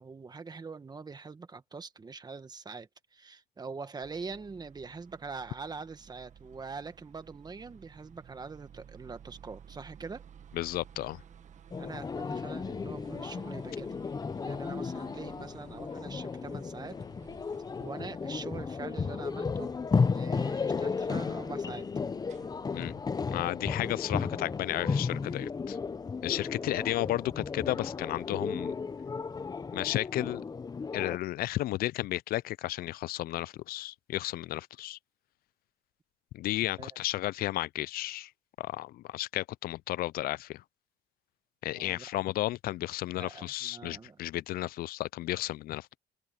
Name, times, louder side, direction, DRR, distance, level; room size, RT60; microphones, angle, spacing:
voice 1, 0.0-10.2 11.8-14.0 14.4-17.0 17.8-19.7 20.1-21.9 26.6-26.9 36.8-37.0 41.7-42.1 43.2-44.2, right 4 dB, 25° right, 1.7 m, -43 dB
sound 1, 4.0-23.3, right 8 dB, 45° right, 1.7 m, -55 dB
voice 2, 10.5-11.2 22.7-22.9 23.3-25.8 26.2-28.7 29.7-30.4 30.9-35.0 36.3-38.3 38.6-40.6 41.6-46.0, left 16 dB, 60° left, 0.4 m, -33 dB
sound 2, 11.7-31.2, left 5 dB, 25° left, 0.7 m, -34 dB
cardioid pair, 110°, 17 cm